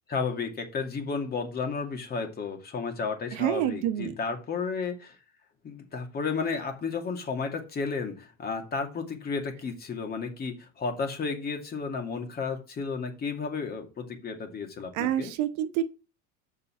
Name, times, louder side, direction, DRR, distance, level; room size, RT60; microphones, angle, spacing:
voice 1, 0.1-5.2 5.6-15.3, left 5 dB, 30° left, 2.3 m, -33 dB
voice 2, 3.3-4.1 14.9-15.8, right 11 dB, 60° right, 1.1 m, -27 dB
6.8 x 5.5 x 7.0 m
cardioid pair, 140°, 33 cm